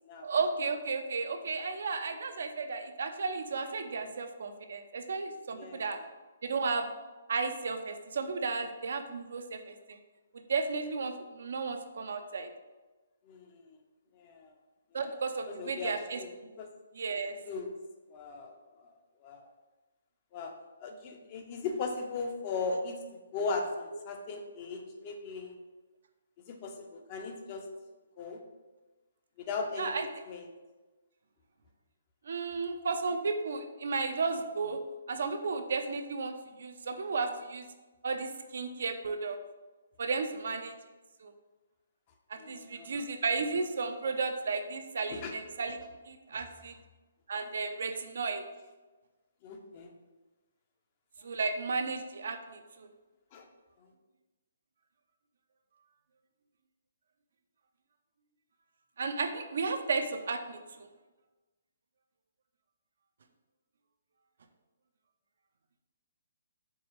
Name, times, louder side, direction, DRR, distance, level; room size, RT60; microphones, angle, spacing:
voice 1, 0.2-6.0 6.4-6.9 7.3-10.0 10.5-12.5 14.9-16.2 16.9-17.3 29.8-30.1 32.2-34.8 35.1-36.3 36.6-37.7 38.0-39.4 40.0-40.7 41.2-41.3 42.3-45.8 46.1-46.7 47.3-48.4 51.2-52.9 59.0-60.9, right 4 dB, 65° right, 7 dB, 0.4 m, -33 dB
voice 2, 5.5-6.0 13.2-13.8 14.1-14.5 14.9-15.2 15.5-16.3 16.6-16.7 17.4-17.7 18.1-18.9 19.2-19.5 20.3-20.5 20.8-23.0 23.3-25.6 26.4-27.7 28.2-28.4 29.4-29.9 30.3-30.5 42.4-43.1 45.1-45.4 49.4-49.9 51.2-51.3 53.3-53.5 53.8-53.9, left 4 dB, 35° left, 4 dB, 0.6 m, -38 dB
4.6 x 3.1 x 3.0 m, 1.2 s
hypercardioid pair, 150°, 0 cm